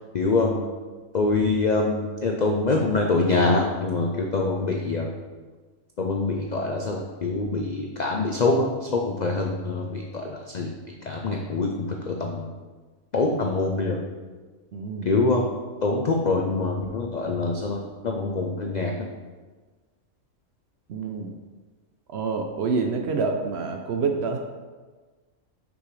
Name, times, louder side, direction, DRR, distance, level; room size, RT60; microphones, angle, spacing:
voice 1, 0.1-0.6 1.1-5.1 6.0-10.7 11.1-12.4 13.1-14.0 15.1-15.4 15.8-19.1, left 3 dB, 75° left, 1 dB, 0.4 m, -25 dB
voice 2, 14.7-15.1 20.9-21.3 22.1-24.4, right 4 dB, 65° right, 4 dB, 0.7 m, -27 dB
6.2 x 5.4 x 3.2 m, 1.3 s
omnidirectional pair, 1.5 m